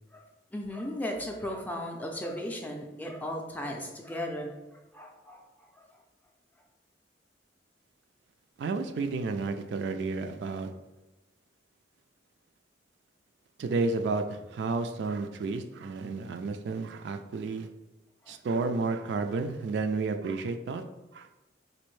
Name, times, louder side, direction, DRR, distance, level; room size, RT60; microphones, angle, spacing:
voice 1, 0.1-4.5 4.9-5.9 18.2-18.7, left 1 dB, 10° left, 2 dB, 0.4 m, -37 dB
voice 2, 8.6-10.7 13.6-17.7 18.3-20.8 21.1-21.3, right 3 dB, 75° right, 7 dB, 0.3 m, -31 dB
4.2 x 2.6 x 3.1 m, 1.1 s
head